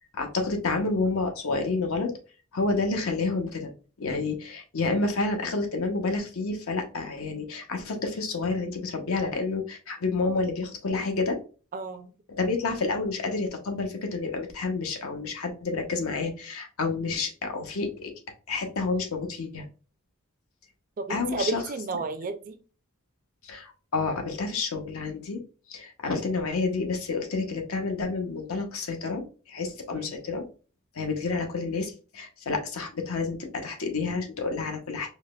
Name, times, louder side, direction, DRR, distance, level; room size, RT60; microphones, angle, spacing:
voice 1, 0.1-2.1 2.5-3.7 4.0-11.4 12.3-18.1 18.5-19.6 21.1-21.6 23.4-25.4 25.7-30.5 30.9-35.1, left 3 dB, 70° left, 4 dB, 0.7 m, -29 dB
voice 2, 11.7-12.1 21.0-22.6 29.9-30.2, right 3 dB, 40° right, 8 dB, 0.4 m, -32 dB
4.7 x 2.0 x 2.3 m, 0.36 s
head